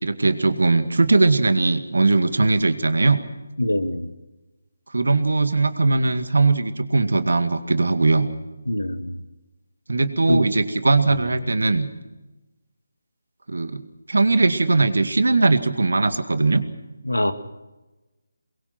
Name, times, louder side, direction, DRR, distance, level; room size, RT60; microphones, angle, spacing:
voice 1, 0.0-3.2 4.9-8.3 9.9-11.9 13.5-13.8 14.1-16.6, right 3 dB, 70° right, 10 dB, 2.1 m, -19 dB
voice 2, 3.6-4.1 8.7-9.2 10.3-10.5 11.1-11.3 17.0-17.3, left 1 dB, 85° left, 9 dB, 2.1 m, -24 dB
23.0 x 22.5 x 6.1 m, 1.1 s
figure-of-eight pair, 155°, 0 cm